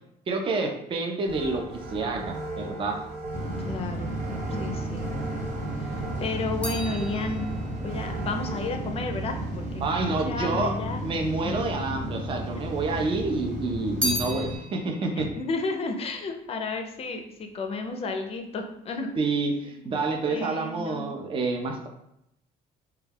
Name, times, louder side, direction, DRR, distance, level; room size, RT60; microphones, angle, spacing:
voice 1, 0.3-1.6 1.9-3.0 9.8-10.7 11.0-15.3 19.2-21.9, right 3 dB, 30° right, 3 dB, 0.4 m, -28 dB
sound 1, 1.3-8.7, right 2 dB, 80° right, 0.7 m, -38 dB
sound 2, 3.3-14.6, right 1 dB, 45° right, 0.9 m, -33 dB
voice 2, 3.6-4.1 4.5-5.1 5.8-5.9 6.2-7.5 7.8-9.6 10.1-11.0 11.4-11.5 12.5-12.7 14.4-14.5 15.2-19.1 20.2-21.1, left 3 dB, 35° left, 5 dB, 0.4 m, -32 dB
sound 3, 6.6-10.1 10.9-11.7 11.9-13.1 13.4-16.9 17.2-17.7, left 1 dB, 5° left, 0.7 m, -37 dB
2.2 x 2.2 x 3.3 m, 0.79 s
cardioid pair, 110°, 17 cm